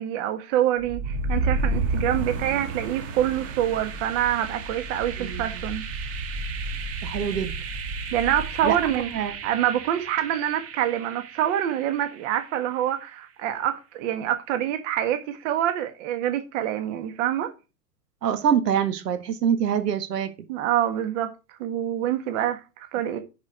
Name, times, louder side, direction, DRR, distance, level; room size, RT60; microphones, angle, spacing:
voice 1, 0.0-5.9 8.1-17.5 20.5-21.3 21.6-23.2, right 11 dB, 45° right, 1.6 m, -26 dB
sound 1, 0.8-12.7, right 3 dB, 30° right, 1.5 m, -32 dB
voice 2, 7.0-7.5 8.6-8.8 9.1-9.3 18.2-20.3, right 8 dB, 70° right, 1.7 m, -24 dB
10.5 x 4.7 x 5.0 m
hypercardioid pair, 125°, 50 cm